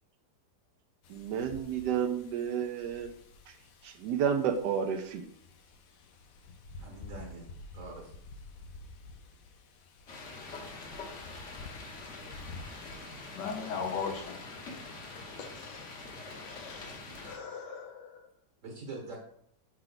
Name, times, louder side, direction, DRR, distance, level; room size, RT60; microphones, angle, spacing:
Wind, 1.0-14.2, left 3 dB, 65° left, 1.0 m, -51 dB
voice 1, 1.1-3.1 3.5-5.3, right 8 dB, 80° right, 1.2 m, -31 dB
voice 2, 6.8-7.4 7.7-8.1 18.6-19.2, right 3 dB, 55° right, 1.2 m, -43 dB
sound 1, 10.1-17.4, left 3 dB, 50° left, 1.2 m, -45 dB
voice 3, 13.3-14.4 15.3-18.3, left 5 dB, 90° left, 1.5 m, -39 dB
5.8 x 4.4 x 3.9 m
omnidirectional pair, 1.8 m